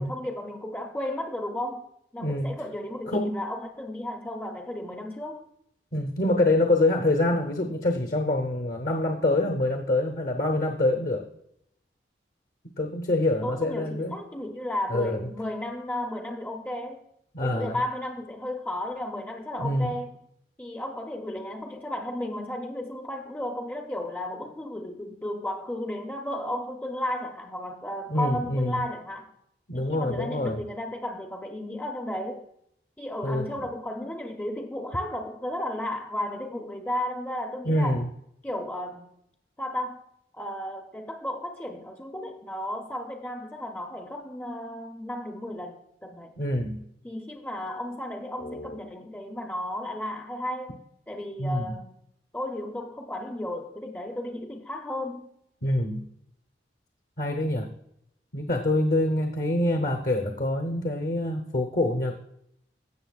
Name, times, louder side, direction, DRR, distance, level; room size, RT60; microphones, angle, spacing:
voice 1, 0.0-1.9 2.1-5.4 13.4-17.0 17.4-20.2 20.6-29.3 29.7-32.5 33.0-38.0 38.4-39.1 39.6-40.0 40.3-46.3 47.0-50.8 51.1-52.0 52.3-55.3, left 1 dB, 10° left, 2 dB, 0.5 m, -34 dB
voice 2, 2.2-2.5 3.1-3.4 5.9-11.3 12.8-14.2 14.9-15.3 17.3-17.8 19.6-19.9 28.1-28.8 29.7-30.6 33.2-33.7 37.6-38.1 46.4-46.8 48.4-48.7 51.4-51.8 55.6-56.1 57.2-57.7 58.3-62.1, left 1 dB, 55° left, 4 dB, 0.8 m, -26 dB
16.5 x 6.4 x 2.3 m, 0.75 s
head